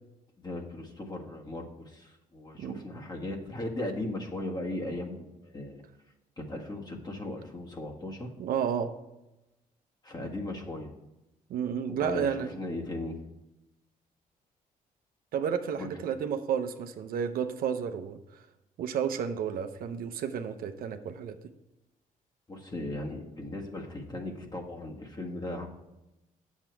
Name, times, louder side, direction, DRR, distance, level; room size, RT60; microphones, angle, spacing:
voice 1, 0.4-5.8 6.4-8.3 10.0-10.9 11.9-13.2 15.8-15.9 22.5-25.7, left 1 dB, 25° left, 1 dB, 1.7 m, -37 dB
voice 2, 8.4-8.9 11.5-12.5 15.3-18.4 18.8-21.4, right 7 dB, 75° right, 8 dB, 0.7 m, -31 dB
8.9 x 7.4 x 4.6 m, 0.96 s
cardioid pair, 110°, 15 cm